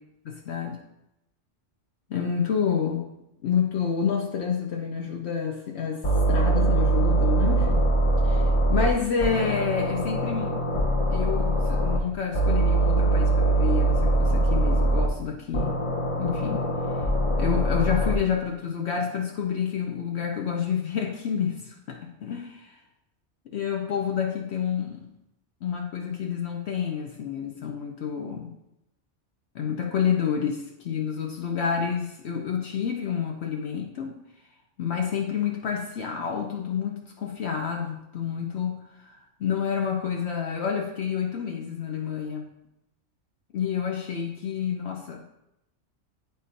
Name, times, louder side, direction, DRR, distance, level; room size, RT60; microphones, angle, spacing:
voice 1, 0.2-0.8 2.1-3.1 3.4-7.8 8.2-10.6 11.1-15.8 16.2-16.7 17.4-22.8 23.5-25.1 25.6-28.5 29.5-34.2 34.8-42.5 43.5-45.2, left 7 dB, 70° left, 1 dB, 0.9 m, -29 dB
sound 1, 6.0-8.9 9.2-12.0 12.3-15.1 15.5-18.2, right 2 dB, 35° left, 0.5 m, -23 dB
10.5 x 3.9 x 2.6 m, 0.87 s
omnidirectional pair, 1.2 m